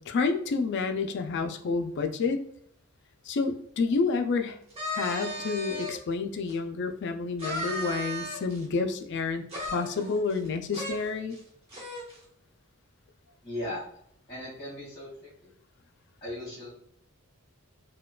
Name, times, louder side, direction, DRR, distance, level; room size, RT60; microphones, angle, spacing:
voice 1, 0.0-2.4 3.3-4.6 4.9-11.4, left 4 dB, 55° left, 6 dB, 0.3 m, -29 dB
sound 1, 4.7-6.0 6.5-6.6 7.4-8.6 9.5-10.5 10.7-10.9 11.3-11.4 11.7-12.2, equal, 30° right, 1.1 m, -35 dB
voice 2, 13.4-13.8 14.3-15.1 15.4-15.5 16.2-16.7, left 1 dB, 20° left, -8 dB, 1.4 m, -37 dB
4.3 x 2.2 x 2.3 m, 0.67 s
head